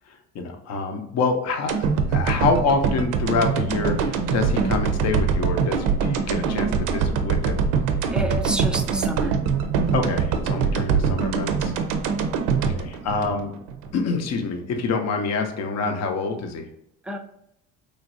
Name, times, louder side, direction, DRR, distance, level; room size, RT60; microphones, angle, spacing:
voice 1, 0.1-7.6 9.9-11.7 12.6-13.5 13.9-16.7, left 4 dB, 50° left, 5 dB, 0.7 m, -26 dB
sound 1, 1.7-13.9 14.3-14.4, right 6 dB, 70° right, 0.5 m, -23 dB
voice 2, 8.1-9.4 17.0-17.2, right 1 dB, 5° right, 4 dB, 0.3 m, -29 dB
3.1 x 2.5 x 2.5 m, 0.78 s
supercardioid pair, 80°, 33 cm